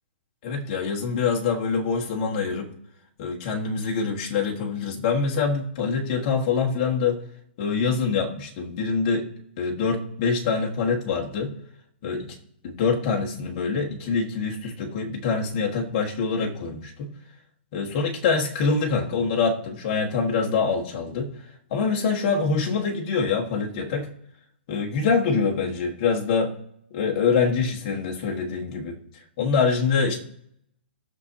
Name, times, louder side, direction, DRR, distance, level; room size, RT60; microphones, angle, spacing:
voice 1, 0.4-2.7 3.2-7.2 7.6-9.3 9.6-11.5 12.0-12.3 12.6-17.1 17.7-21.3 21.7-24.1 24.7-26.5 26.9-29.0 29.4-30.2, left 5 dB, 30° left, -1 dB, 1.6 m, -25 dB
19.0 x 6.8 x 2.8 m, 0.72 s
hypercardioid pair, 175°, 6 cm